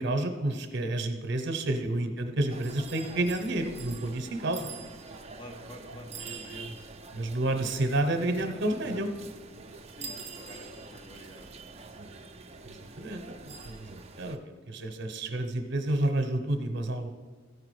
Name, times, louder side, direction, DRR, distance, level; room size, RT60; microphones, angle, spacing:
voice 1, 0.0-4.7 7.1-9.1 12.0-12.1 12.6-14.4 14.7-17.1, right 1 dB, 60° right, 7 dB, 1.0 m, -30 dB
sound 1, 2.5-14.4, right 4 dB, 30° right, 0.6 m, -45 dB
voice 2, 5.3-6.7 10.0-12.3 15.3-15.4, equal, 25° left, 3 dB, 0.9 m, -49 dB
14.5 x 4.9 x 4.9 m, 1.4 s
head